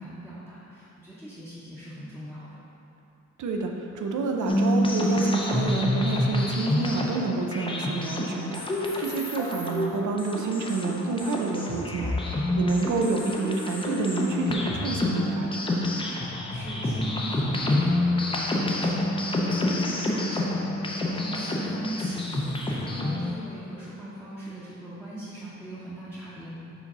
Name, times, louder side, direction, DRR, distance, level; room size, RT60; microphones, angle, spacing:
voice 1, 0.0-2.5 11.8-12.4 13.0-13.1 16.3-26.6, right 1 dB, 5° right, -11 dB, 0.8 m, -40 dB
voice 2, 3.4-15.7, right 3 dB, 85° right, 2 dB, 0.6 m, -29 dB
sound 1, 4.5-23.3, left 1 dB, 20° left, 0.5 m, -28 dB
4.9 x 4.0 x 5.4 m, 2.8 s
wide cardioid pair, 170°, 29 cm